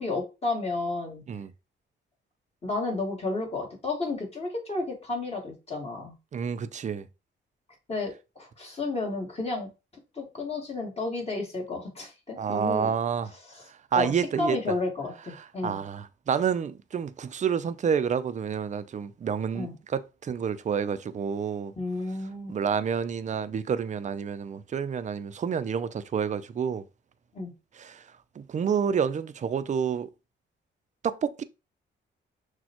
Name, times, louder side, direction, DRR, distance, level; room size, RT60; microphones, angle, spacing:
voice 1, 0.0-1.2 2.6-6.1 7.9-9.7 10.2-12.9 13.5-15.8 19.5-19.7 21.8-22.6 27.3-27.5, left 3 dB, 30° left, 1.7 m, -32 dB
voice 2, 6.3-7.1 12.4-13.3 13.9-14.6 15.6-21.7 22.5-26.8 27.8-28.0 28.4-30.1 31.0-31.4, right 7 dB, 35° right, 0.4 m, -29 dB
6.1 x 2.2 x 2.9 m
cardioid pair, 90°, 20 cm